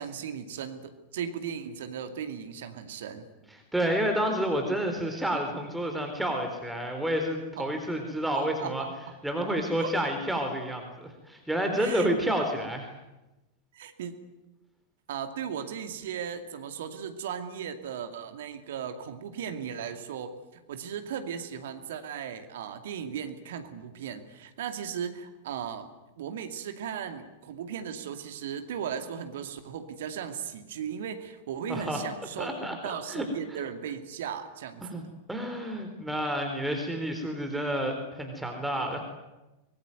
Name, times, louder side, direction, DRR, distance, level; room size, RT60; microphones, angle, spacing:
voice 1, 0.0-3.3 7.6-7.7 8.3-8.9 9.8-10.0 11.8-12.1 13.7-14.1 15.1-25.9 26.2-35.1, right 8 dB, 60° right, 8 dB, 2.4 m, -37 dB
voice 2, 3.7-8.8 9.2-12.9 31.7-32.0 32.4-33.3 34.8-39.0, equal, 5° right, 4 dB, 4.0 m, -30 dB
24.0 x 22.0 x 9.4 m, 1.0 s
figure-of-eight pair, 90°, 0 cm